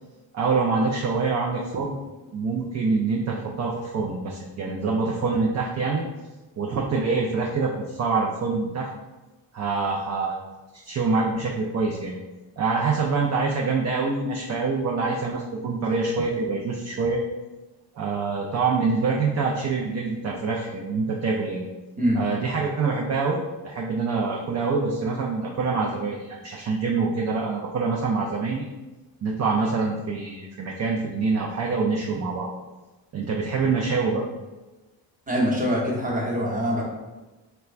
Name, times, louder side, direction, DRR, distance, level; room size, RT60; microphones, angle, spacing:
voice 1, 0.3-2.0 2.3-6.0 6.6-8.9 9.5-10.3 10.7-12.2 12.6-17.2 18.0-21.6 22.1-23.4 23.6-28.7 29.2-32.5 33.1-34.2, right 4 dB, 40° right, -1 dB, 0.4 m, -25 dB
voice 2, 35.3-36.8, equal, 20° right, -3 dB, 0.8 m, -24 dB
3.1 x 2.2 x 2.4 m, 1.1 s
cardioid pair, 65°, 46 cm